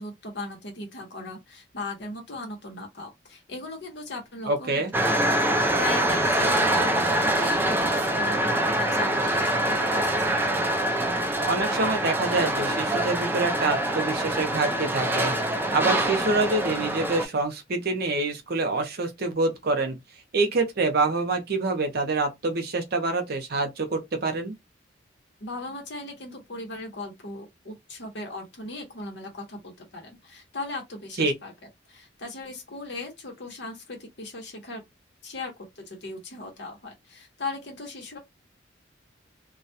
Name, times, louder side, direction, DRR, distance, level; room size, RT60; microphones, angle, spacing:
voice 1, 0.0-5.2 5.5-10.5 25.4-31.5 31.9-34.8 35.2-38.2, left 2 dB, 60° left, 1.0 m, -38 dB
voice 2, 4.5-4.9 11.5-15.3 15.7-19.9 20.3-24.5 31.2-31.3, right 3 dB, 55° right, 0.7 m, -26 dB
sound 1, 4.9-17.2, right 1 dB, 10° right, 0.4 m, -25 dB
2.3 x 2.2 x 2.6 m
head